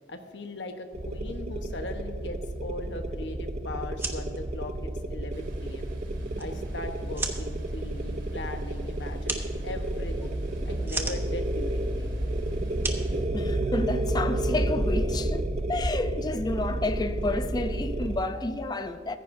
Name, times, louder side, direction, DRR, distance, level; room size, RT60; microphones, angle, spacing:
voice 1, 0.1-5.9 6.4-10.4 10.6-12.2, left 2 dB, 70° left, 1.1 m, -39 dB
sound 1, 0.9-18.2, right 1 dB, 40° right, 0.5 m, -31 dB
sound 2, 3.8-14.0, right 3 dB, 15° right, 1.0 m, -39 dB
Thunder, 5.3-13.3, equal, 90° right, 2.2 m, -48 dB
voice 2, 13.3-15.4 15.7-19.2, left 2 dB, 20° left, 0.5 m, -30 dB
15.0 x 14.5 x 2.6 m
head